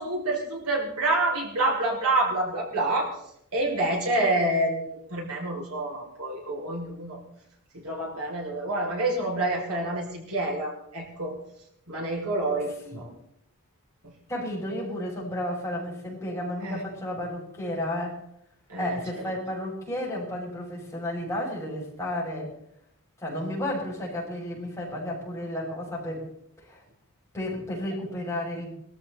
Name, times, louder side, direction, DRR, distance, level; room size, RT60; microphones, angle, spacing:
voice 1, 0.0-3.2 3.5-7.2 7.7-11.4 11.9-13.1 14.0-14.1 16.6-16.8 18.7-19.0, right 2 dB, 90° right, -1 dB, 6.3 m, -28 dB
voice 2, 14.3-18.2 18.8-22.5 23.2-26.3 26.6-26.8 27.3-28.7, left 1 dB, 15° left, -4 dB, 7.1 m, -32 dB
24.0 x 14.0 x 4.2 m, 0.75 s
head